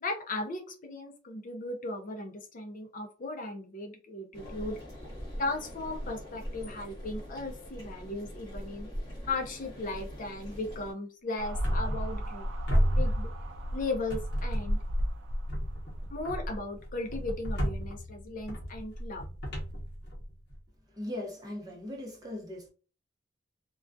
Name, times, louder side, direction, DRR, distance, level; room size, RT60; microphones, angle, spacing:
voice 1, 0.0-4.7 5.4-8.9 9.2-12.5 12.9-13.3 13.7-14.8 16.1-19.2, left 2 dB, 45° left, 0.4 m, -36 dB
sound 1, 4.3-10.9, equal, 20° left, 1.1 m, -42 dB
sound 2, 11.4-16.6, equal, 65° right, 0.4 m, -35 dB
sound 3, 11.6-12.4 12.7-13.7 14.1-14.9 15.5-20.6, equal, 60° left, 0.9 m, -32 dB
voice 2, 20.9-22.7, left 1 dB, 20° right, 0.7 m, -39 dB
2.2 x 2.2 x 2.5 m
head